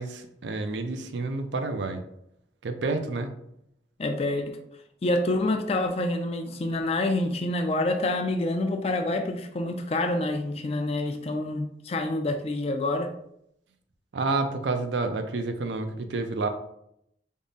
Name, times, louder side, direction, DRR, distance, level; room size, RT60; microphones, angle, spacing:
voice 1, 0.0-2.0 2.6-3.3 14.1-16.5, right 3 dB, 85° right, 7 dB, 0.5 m, -29 dB
voice 2, 4.0-4.6 5.0-13.1, left 2 dB, 35° left, 6 dB, 0.4 m, -27 dB
3.6 x 2.0 x 3.9 m, 0.76 s
head